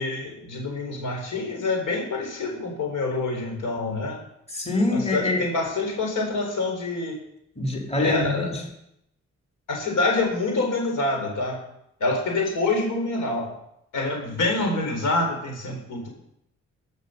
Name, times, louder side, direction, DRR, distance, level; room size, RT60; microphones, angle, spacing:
voice 1, 0.0-4.2 4.9-7.2 8.0-8.5 9.7-11.6 12.0-13.5 13.9-16.1, left 2 dB, 85° left, 1 dB, 3.8 m, -26 dB
voice 2, 4.5-5.5 7.6-8.7, left 2 dB, 20° left, 1 dB, 2.7 m, -25 dB
13.5 x 6.6 x 6.4 m, 0.76 s
cardioid pair, 55°, 30 cm